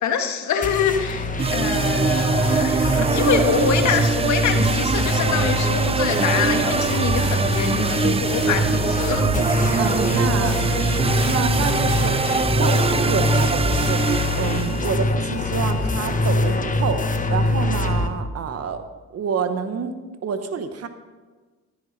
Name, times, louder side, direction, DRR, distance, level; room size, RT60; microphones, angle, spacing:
voice 1, 0.0-9.3, left 6 dB, 70° left, 5 dB, 1.6 m, -25 dB
sound 1, 0.6-18.1, left 2 dB, 25° left, 1.2 m, -24 dB
sound 2, 1.4-14.9, right 5 dB, 20° right, 0.4 m, -23 dB
voice 2, 9.8-10.6 11.2-12.1 12.5-14.0 14.4-17.0 17.3-18.8 19.1-19.9 20.2-20.9, right 6 dB, 55° right, 9 dB, 1.2 m, -27 dB
13.0 x 10.5 x 4.2 m, 1.3 s
cardioid pair, 90°, 30 cm